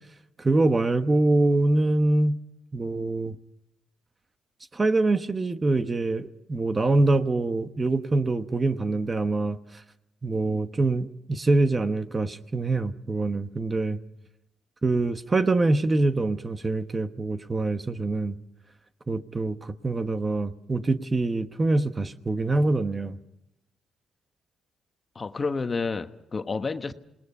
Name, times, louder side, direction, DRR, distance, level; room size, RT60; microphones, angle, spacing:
voice 1, 0.4-2.4 2.7-3.4 4.7-9.6 10.2-14.0 14.8-18.4 19.1-23.2, right 2 dB, 25° right, 1.1 m, -24 dB
voice 2, 25.1-26.9, left 4 dB, 30° left, 1.2 m, -30 dB
27.0 x 20.0 x 5.5 m
cardioid pair, 90°, 0 cm